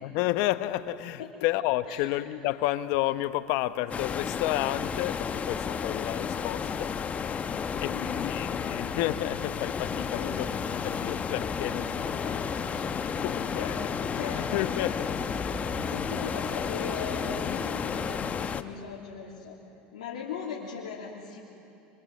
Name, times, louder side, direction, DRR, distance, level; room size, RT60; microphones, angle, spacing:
voice 1, 0.0-6.9 7.8-10.5 10.8-13.9 14.4-15.1, left 15 dB, 65° left, 1.0 m, -31 dB
sound 1, 3.9-18.6, left 6 dB, 30° left, 1.1 m, -32 dB
sound 2, 8.5-17.4, right 2 dB, 45° right, 7.8 m, -45 dB
voice 2, 13.3-13.7 14.1-14.6 15.8-19.6 19.9-21.4, left 6 dB, 85° left, 3.2 m, -39 dB
25.0 x 24.5 x 7.8 m
supercardioid pair, 95°, 5 cm